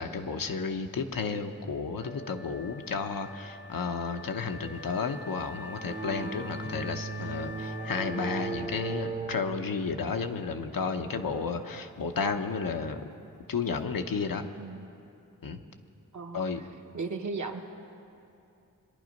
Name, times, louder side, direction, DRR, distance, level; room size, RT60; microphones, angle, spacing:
voice 1, 0.0-13.0 13.5-14.5 15.4-15.6 16.3-16.6, left 5 dB, 85° left, 6 dB, 0.9 m, -32 dB
Wind instrument woodwind instrument, 2.0-9.6, left 2 dB, 35° left, 0.5 m, -45 dB
sound 1, 5.8-13.9, right 4 dB, 20° right, 0.7 m, -39 dB
voice 2, 14.5-14.9 16.1-16.7 16.9-17.6, right 4 dB, 60° right, 3 dB, 1.1 m, -36 dB
22.5 x 10.5 x 5.3 m, 2.7 s
wide cardioid pair, 90°, 33 cm